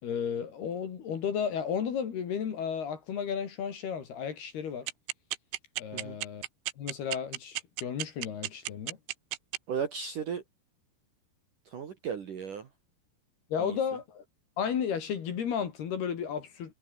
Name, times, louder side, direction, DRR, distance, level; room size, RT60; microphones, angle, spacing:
voice 1, 0.0-4.9 5.8-6.4 6.8-9.0 13.5-14.2 14.6-16.7, left 7 dB, 60° left, 4.6 m, -33 dB
sound 1, 4.9-9.6, right 18 dB, 85° right, 3.5 m, -32 dB
voice 2, 9.7-10.4 11.7-12.7 13.6-13.8, right 7 dB, 50° right, 3.3 m, -35 dB
omnidirectional pair, 5.4 m